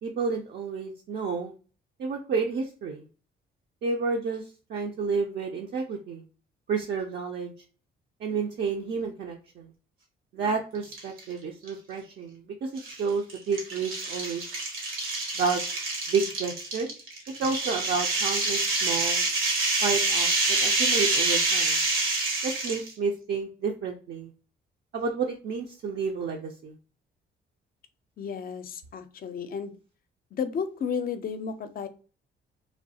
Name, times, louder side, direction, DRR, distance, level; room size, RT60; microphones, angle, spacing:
voice 1, 0.0-1.5 2.0-3.0 3.8-6.2 6.7-7.5 8.2-9.7 10.3-14.4 15.3-15.6 16.1-16.9 17.4-19.2 19.8-21.8 22.4-24.3 24.9-26.7, right 5 dB, 55° right, 0 dB, 0.5 m, -30 dB
sound 1, 10.8-11.2 11.7-11.8 12.8-22.9, right 3 dB, 85° right, 1.1 m, -27 dB
voice 2, 28.2-29.7 30.3-31.9, left 6 dB, 50° left, 10 dB, 0.5 m, -33 dB
3.1 x 2.3 x 2.7 m, 0.37 s
cardioid pair, 90°, 20 cm